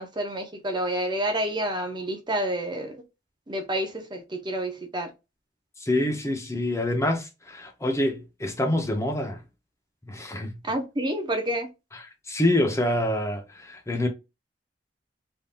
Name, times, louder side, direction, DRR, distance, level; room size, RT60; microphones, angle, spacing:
voice 1, 0.0-3.0 3.5-5.1 10.6-11.7, right 1 dB, 25° right, 0.6 m, -29 dB
voice 2, 5.8-9.4 10.1-10.6 11.9-14.1, left 1 dB, 15° left, 0.7 m, -26 dB
3.5 x 2.7 x 2.4 m
head